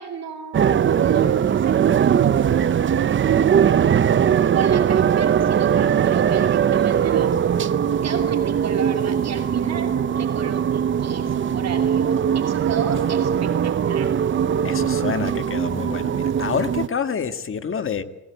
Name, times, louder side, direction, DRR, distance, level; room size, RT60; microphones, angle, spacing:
voice 1, 0.0-3.2 4.5-7.5 8.0-14.1, right 7 dB, 60° right, 4 dB, 2.7 m, -33 dB
sound 1, 0.5-16.9, right 8 dB, 40° right, 0.7 m, -20 dB
voice 2, 14.6-18.0, left 6 dB, 45° left, 9 dB, 1.6 m, -27 dB
19.5 x 17.0 x 8.0 m, 1.0 s
cardioid pair, 90°, 30 cm